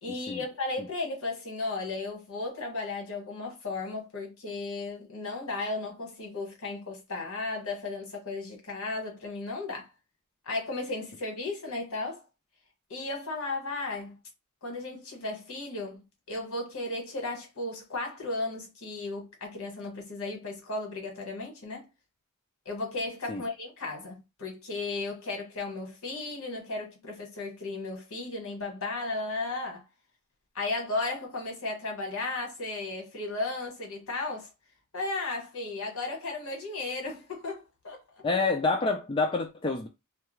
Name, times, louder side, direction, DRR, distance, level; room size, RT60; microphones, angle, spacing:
voice 1, 0.0-9.9 10.4-12.2 12.9-14.2 14.6-21.9 22.6-29.8 30.5-34.5 34.9-38.0, left 3 dB, 65° left, 1.1 m, -35 dB
voice 2, 38.2-39.9, left 3 dB, 25° left, 0.3 m, -27 dB
2.3 x 2.2 x 3.0 m
head